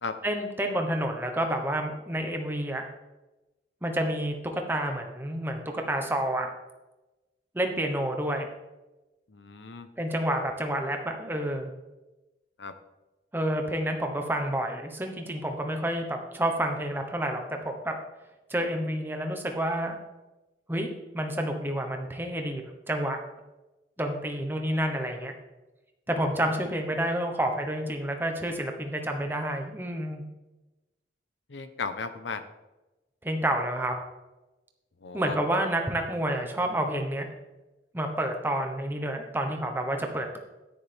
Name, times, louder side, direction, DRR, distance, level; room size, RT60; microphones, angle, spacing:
voice 1, 0.2-2.8 3.8-6.5 7.5-8.5 10.0-11.7 13.3-17.9 18.5-19.9 20.7-23.2 24.0-25.3 26.1-30.2 33.2-34.0 35.1-37.3 37.9-40.4, right 1 dB, 10° right, 4 dB, 1.1 m, -29 dB
voice 2, 9.3-9.9 12.6-12.7 31.5-32.4 35.0-35.4, left 4 dB, 90° left, 10 dB, 0.8 m, -35 dB
10.0 x 9.8 x 3.5 m, 1.1 s
head